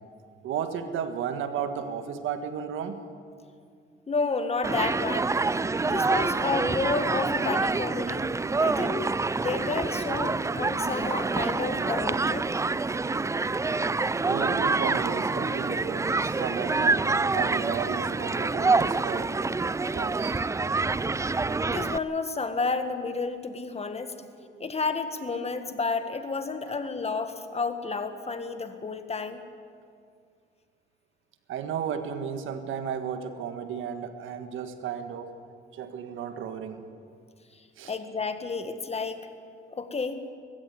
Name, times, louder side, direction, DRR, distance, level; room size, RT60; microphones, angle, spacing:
voice 1, 0.4-3.1 14.3-17.1 17.3-19.4 19.9-20.5 24.5-24.7 31.5-35.4 35.7-36.8 37.8-37.9, right 7 dB, 85° right, 8 dB, 1.7 m, -34 dB
voice 2, 4.1-5.3 5.9-8.3 8.6-12.5 21.7-24.1 24.6-29.4 37.8-39.3 39.7-40.2, left 4 dB, 30° left, 9 dB, 1.7 m, -31 dB
Human group actions, 4.6-22.0, right 3 dB, 15° right, 0.4 m, -27 dB
19.5 x 15.5 x 9.5 m, 2.3 s
cardioid pair, 90°, 20 cm